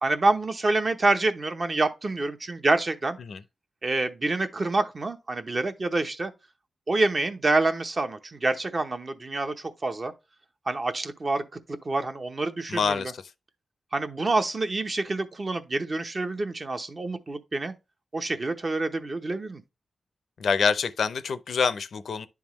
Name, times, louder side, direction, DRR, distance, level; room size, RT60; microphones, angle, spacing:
voice 1, 0.0-3.2 3.8-6.3 6.9-10.1 10.7-11.4 11.8-13.0 13.9-17.7 18.1-19.6, right 2 dB, 35° right, 0.8 m, -27 dB
voice 2, 12.7-13.2 20.4-22.3, left 5 dB, 70° left, 0.5 m, -26 dB
10.5 x 3.5 x 3.0 m
wide cardioid pair, 115°, 0 cm